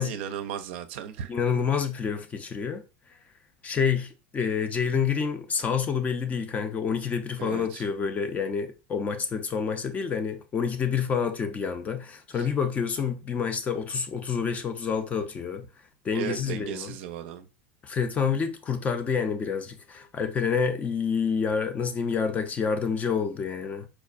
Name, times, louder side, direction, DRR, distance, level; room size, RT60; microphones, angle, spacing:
voice 1, 0.0-1.3 7.4-7.8 12.4-12.5 16.1-17.5, right 9 dB, 70° right, 0.5 m, -35 dB
voice 2, 1.3-2.8 3.6-15.7 16.0-17.0 17.8-23.9, left 6 dB, 25° left, 0.4 m, -28 dB
4.6 x 2.1 x 2.4 m
supercardioid pair, 135°, 6 cm